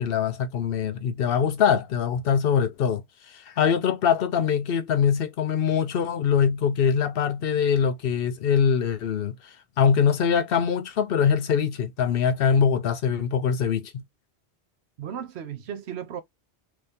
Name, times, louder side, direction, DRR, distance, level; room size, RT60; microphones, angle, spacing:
voice 1, 0.0-3.0 3.3-9.4 9.8-14.0, left 7 dB, 65° left, 0.8 m, -23 dB
voice 2, 15.0-16.2, right 9 dB, 75° right, 1.0 m, -35 dB
3.3 x 2.8 x 3.5 m
omnidirectional pair, 1.1 m